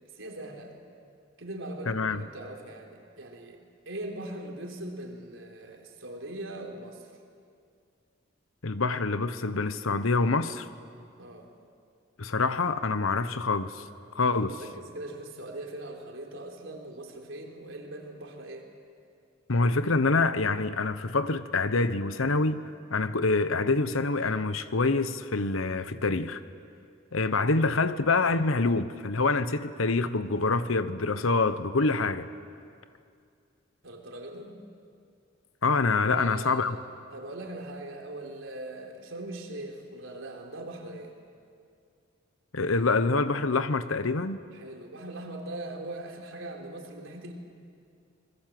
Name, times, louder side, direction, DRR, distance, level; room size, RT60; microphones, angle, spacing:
voice 1, 0.1-0.7 1.4-3.6 3.9-7.0 11.2-11.5 14.2-18.7 33.8-34.6 36.1-36.8 37.1-41.1 44.5-47.3, right 1 dB, 75° right, 3.8 m, -40 dB
voice 2, 1.9-2.2 8.6-10.7 12.2-13.8 14.1-14.6 19.5-22.6 22.9-26.4 27.1-32.3 35.6-36.8 42.5-44.4, left 3 dB, 85° left, 1.0 m, -26 dB
27.0 x 21.0 x 7.7 m
head